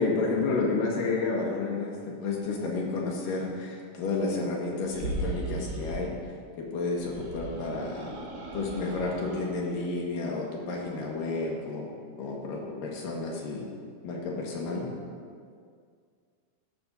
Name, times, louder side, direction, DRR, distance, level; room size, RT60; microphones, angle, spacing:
voice 1, 0.0-6.1 6.6-8.2 8.5-11.9 12.2-13.7 14.0-14.9, left 3 dB, 80° left, -2 dB, 3.3 m, -31 dB
sound 1, 4.8-6.1 6.9-9.6, right 2 dB, 80° right, 3.8 m, -37 dB
14.0 x 12.5 x 2.7 m, 2.1 s
omnidirectional pair, 3.9 m